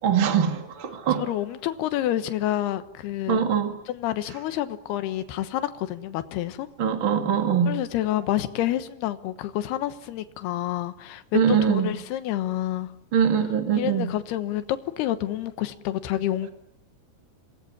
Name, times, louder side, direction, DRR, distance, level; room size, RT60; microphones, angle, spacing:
voice 1, 0.0-1.3 3.3-3.8 6.8-7.8 11.3-11.9 13.1-14.1, right 7 dB, 35° right, 2.2 m, -22 dB
voice 2, 1.2-3.4 3.9-6.7 7.7-12.9 13.8-16.5, left 13 dB, 70° left, 3.1 m, -28 dB
27.0 x 20.0 x 9.9 m
omnidirectional pair, 5.0 m